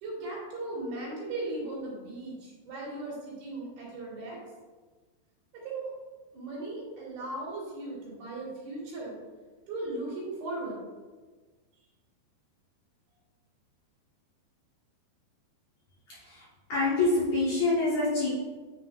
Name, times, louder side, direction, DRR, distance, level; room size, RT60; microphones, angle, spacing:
voice 1, 0.0-4.4 5.5-5.9 6.3-9.2 9.7-10.8, right 2 dB, 70° right, -5 dB, 3.8 m, -37 dB
voice 2, 16.1-18.3, left 2 dB, 55° left, -9 dB, 2.3 m, -27 dB
9.7 x 4.9 x 2.5 m, 1.3 s
omnidirectional pair, 4.6 m